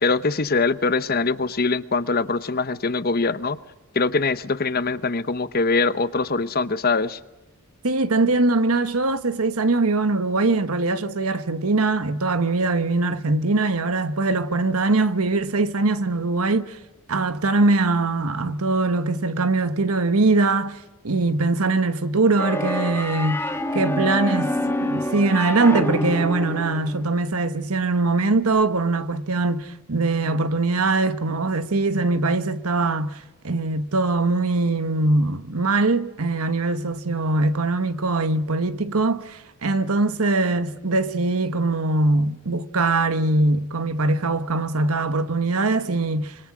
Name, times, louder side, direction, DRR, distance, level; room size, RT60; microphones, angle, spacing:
voice 1, 0.0-3.6 3.9-7.2, left 4 dB, 40° left, 0.8 m, -23 dB
voice 2, 7.8-16.8 17.1-20.8 21.0-46.4, right 3 dB, 75° right, 1.3 m, -22 dB
sound 1, 22.4-27.1, left 1 dB, 10° left, 1.7 m, -27 dB
25.5 x 25.5 x 6.2 m
head